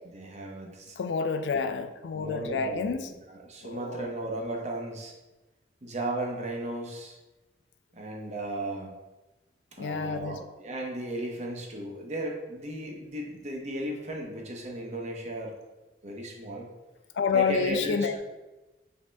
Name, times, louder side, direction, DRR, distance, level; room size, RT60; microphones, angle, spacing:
voice 1, 0.1-1.0 2.1-2.9 3.5-5.1 5.8-7.2 7.9-8.9 9.8-15.5 16.0-16.7 17.3-18.2, right 1 dB, 40° right, 0 dB, 0.8 m, -35 dB
voice 2, 1.0-3.1 3.6-4.1 9.8-10.4 17.1-18.2, left 5 dB, 85° left, 9 dB, 0.4 m, -29 dB
5.2 x 2.8 x 3.3 m, 1.1 s
head